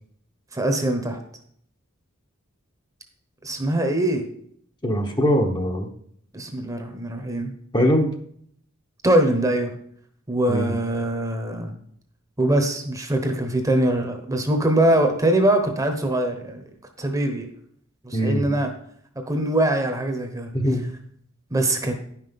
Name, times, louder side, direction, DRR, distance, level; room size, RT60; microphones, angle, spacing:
voice 1, 0.5-1.2 3.4-4.3 6.3-7.5 9.0-9.7 10.3-11.8 12.4-16.6 17.0-17.5 18.0-18.7 19.3-20.5 21.5-22.0, right 1 dB, 15° right, 5 dB, 1.1 m, -22 dB
voice 2, 4.8-5.9 7.7-8.1 10.5-10.7 18.1-18.5 20.5-20.9, equal, 20° left, 3 dB, 1.0 m, -21 dB
10.5 x 5.9 x 5.4 m, 0.64 s
head